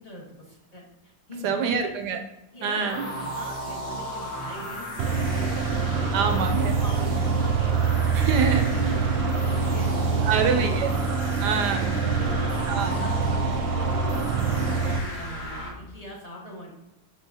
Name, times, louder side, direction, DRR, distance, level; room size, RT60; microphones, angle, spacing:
voice 1, 0.0-2.0 2.5-6.1 6.8-9.2 9.5-10.9 12.1-16.7, equal, 20° left, -3 dB, 1.3 m, -41 dB
voice 2, 1.4-2.2 2.6-3.1 6.1-6.8 8.1-8.9 10.2-10.9 11.4-12.0 12.7-12.9, right 5 dB, 70° right, 6 dB, 1.0 m, -26 dB
sound 1, 2.9-15.7, equal, 60° left, 1.9 m, -35 dB
sound 2, 5.0-15.0, right 5 dB, 85° right, 1.4 m, -25 dB
6.6 x 5.3 x 2.7 m, 0.96 s
omnidirectional pair, 2.1 m